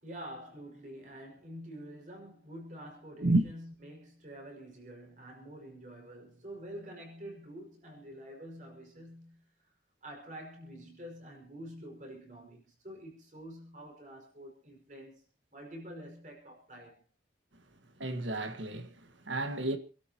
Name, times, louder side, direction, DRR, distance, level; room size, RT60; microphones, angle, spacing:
voice 1, 0.0-9.5 10.0-15.2 15.5-17.0, equal, 40° right, 5.5 m, -47 dB
voice 2, 18.0-19.8, right 2 dB, 85° right, 1.7 m, -30 dB
28.0 x 12.5 x 3.0 m
head